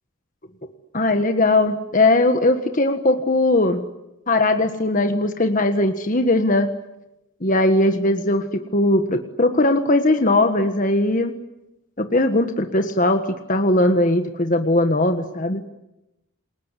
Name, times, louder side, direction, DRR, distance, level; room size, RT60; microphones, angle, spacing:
voice 1, 0.9-3.8 4.3-6.7 7.4-11.3 12.0-15.6, left 2 dB, 40° left, 7 dB, 1.5 m, -19 dB
28.0 x 21.0 x 9.9 m, 0.93 s
head